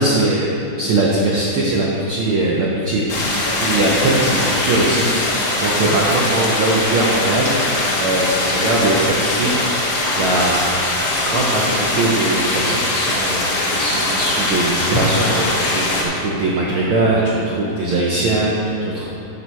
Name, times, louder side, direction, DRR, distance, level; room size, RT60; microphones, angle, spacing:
voice 1, 0.0-3.2 3.6-7.5 7.9-9.5 10.1-10.6 11.2-19.1, right 2 dB, 90° right, -5 dB, 1.1 m, -20 dB
sound 1, 3.1-16.0, left 2 dB, 60° left, 1.1 m, -21 dB
7.0 x 7.0 x 4.5 m, 2.7 s
omnidirectional pair, 3.6 m